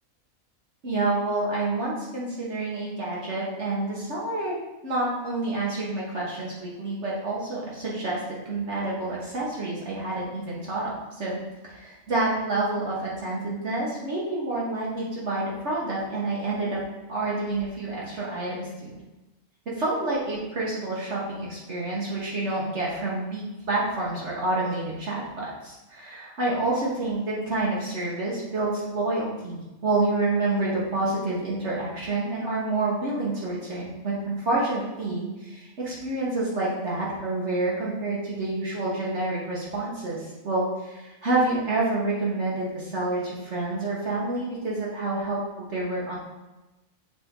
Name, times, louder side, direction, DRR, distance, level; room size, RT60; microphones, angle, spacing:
voice 1, 0.8-4.6 4.8-11.4 11.6-16.8 17.1-18.9 19.7-46.2, right 2 dB, 55° right, -6 dB, 1.5 m, -28 dB
7.0 x 4.2 x 3.7 m, 1.0 s
omnidirectional pair, 1.4 m